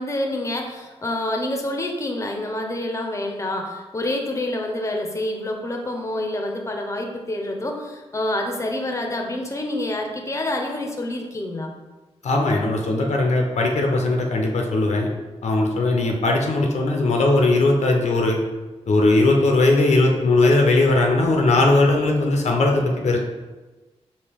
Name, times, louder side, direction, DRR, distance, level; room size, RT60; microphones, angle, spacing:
voice 1, 0.0-11.7, left 1 dB, 25° left, 3 dB, 0.7 m, -27 dB
voice 2, 12.2-15.1 15.4-18.4 18.9-23.2, left 2 dB, 80° left, 1 dB, 0.6 m, -19 dB
4.5 x 2.8 x 3.5 m, 1.2 s
cardioid pair, 60°, 12 cm